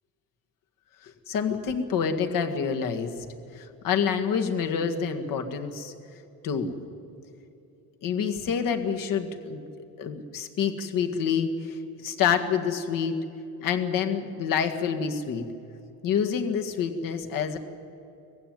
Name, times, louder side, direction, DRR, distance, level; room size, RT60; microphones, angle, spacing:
voice 1, 1.0-3.1 3.5-5.9 6.4-6.7 8.0-9.7 10.0-13.2 13.6-15.5 16.0-17.6, left 7 dB, 55° left, 5 dB, 1.9 m, -27 dB
19.5 x 15.5 x 9.3 m, 2.7 s
cardioid pair, 115°, 40 cm